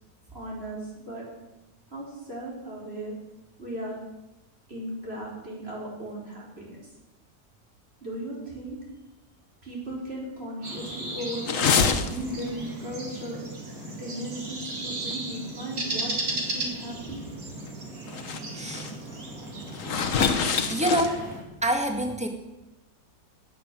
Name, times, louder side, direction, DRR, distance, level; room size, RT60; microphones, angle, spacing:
voice 1, 0.3-1.2 1.9-3.2 3.6-4.0 4.7-6.8 8.0-8.8 9.6-11.8 12.0-13.4 13.7-17.2, right 1 dB, 35° right, -5 dB, 5.3 m, -36 dB
sound 1, 10.6-21.4, right 2 dB, 50° right, 2.8 m, -36 dB
sound 2, 11.5-12.5 12.8-13.0 13.8-14.0 14.4-14.5 15.1-15.2 16.8-16.9 17.7-17.8 18.1-18.4 18.7-18.9 19.7-21.3, left 6 dB, 50° left, 1.3 m, -25 dB
voice 2, 18.5-18.9 20.7-21.2 21.6-22.3, right 1 dB, 5° right, 3 dB, 1.7 m, -26 dB
17.5 x 7.1 x 7.8 m, 1.0 s
omnidirectional pair, 1.9 m